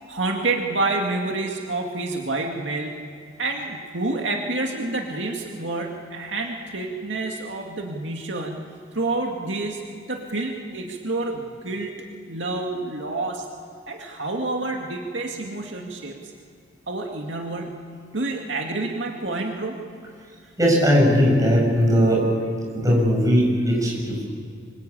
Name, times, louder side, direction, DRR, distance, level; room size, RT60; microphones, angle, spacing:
voice 1, 0.1-3.0 3.4-9.8 10.1-13.5 13.9-16.3 16.9-19.8, right 2 dB, 75° right, 1 dB, 2.3 m, -28 dB
voice 2, 20.6-22.2 22.7-24.2, equal, 20° right, -2 dB, 7.9 m, -19 dB
26.0 x 25.0 x 8.7 m, 2.5 s
head